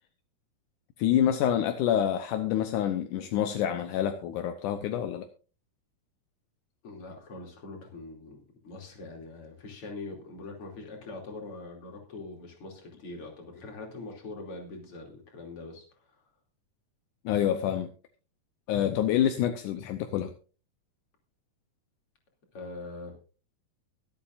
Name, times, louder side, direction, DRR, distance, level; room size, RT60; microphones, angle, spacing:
voice 1, 1.0-5.3 17.3-17.9 18.7-20.3, left 10 dB, 75° left, 7 dB, 2.2 m, -27 dB
voice 2, 6.8-16.3 22.5-23.1, left 3 dB, 40° left, 1 dB, 3.5 m, -43 dB
23.0 x 8.6 x 2.6 m, 0.35 s
omnidirectional pair, 3.9 m